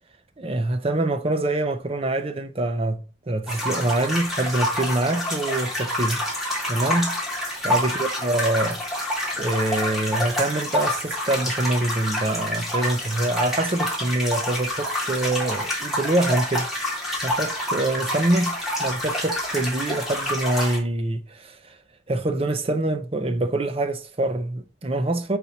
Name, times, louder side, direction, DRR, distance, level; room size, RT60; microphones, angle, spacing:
voice 1, 0.4-6.2 6.7-7.2 7.6-8.8 9.1-16.7 17.2-21.8 22.1-25.4, right 2 dB, 30° right, 0.6 m, -25 dB
sound 1, 3.5-20.8, left 1 dB, ahead, 2.0 m, -27 dB
7.0 x 4.2 x 4.0 m
head